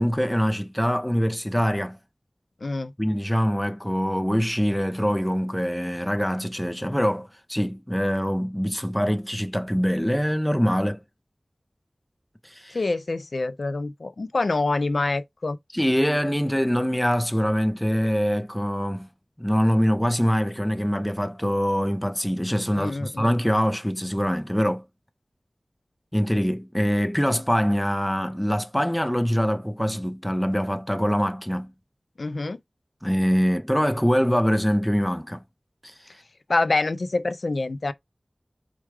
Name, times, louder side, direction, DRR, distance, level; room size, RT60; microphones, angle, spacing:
voice 1, 0.0-2.0 3.0-11.0 12.4-12.8 15.7-19.1 19.4-24.8 26.1-31.7 33.0-35.4 35.8-35.9, equal, 5° left, 0.6 m, -24 dB
voice 2, 2.6-2.9 12.7-15.6 22.8-23.3 32.2-32.6 36.5-37.9, left 3 dB, 75° left, 0.4 m, -26 dB
4.6 x 2.3 x 4.7 m
wide cardioid pair, 60°, 0 cm